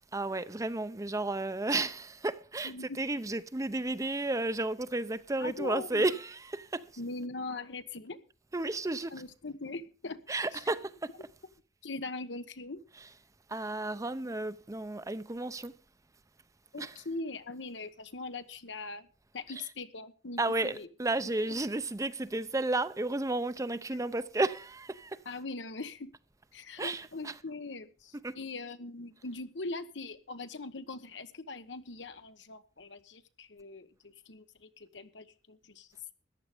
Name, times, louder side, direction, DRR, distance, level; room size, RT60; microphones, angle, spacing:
voice 1, 0.1-7.0 8.5-9.2 10.3-11.3 12.9-13.2 13.5-15.7 16.8-17.1 19.5-19.7 20.4-25.2 26.8-27.4 28.1-28.4, right 2 dB, 20° right, 0.6 m, -33 dB
voice 2, 2.6-3.0 5.4-6.1 7.0-8.2 9.1-10.2 11.8-12.8 16.7-19.1 19.3-20.9 21.4-21.5 25.3-26.1 26.5-36.1, left 3 dB, 80° left, 1.1 m, -41 dB
14.0 x 10.5 x 5.0 m
head